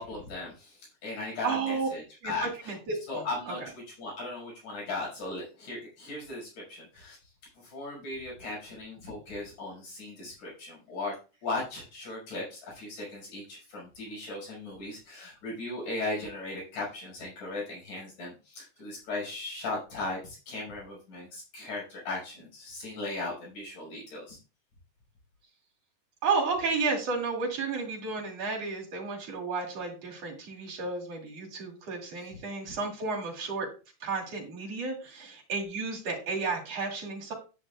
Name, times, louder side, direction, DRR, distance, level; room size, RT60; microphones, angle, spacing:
voice 1, 0.0-2.8 3.1-7.2 7.6-11.1 11.4-24.4, left 2 dB, 75° left, -3 dB, 7.1 m, -37 dB
voice 2, 1.4-1.9 2.2-2.3 2.7-3.7 26.2-33.7 34.0-37.3, right 4 dB, 55° right, 0 dB, 3.5 m, -32 dB
11.0 x 9.8 x 2.4 m, 0.33 s
omnidirectional pair, 3.6 m